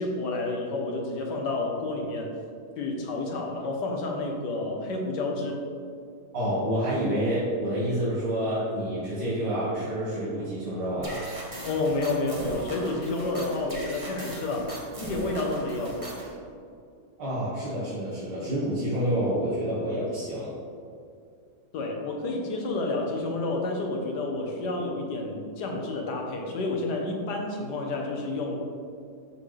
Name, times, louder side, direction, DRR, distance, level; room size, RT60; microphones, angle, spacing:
voice 1, 0.0-2.3 2.8-5.6 11.6-16.0 21.7-28.6, left 2 dB, 85° left, 1 dB, 1.6 m, -30 dB
voice 2, 6.3-11.3 17.2-20.5, equal, 75° right, -11 dB, 2.3 m, -28 dB
sound 1, 11.0-16.3, right 1 dB, 25° right, 1.0 m, -39 dB
12.0 x 4.1 x 3.2 m, 2.3 s
omnidirectional pair, 1.7 m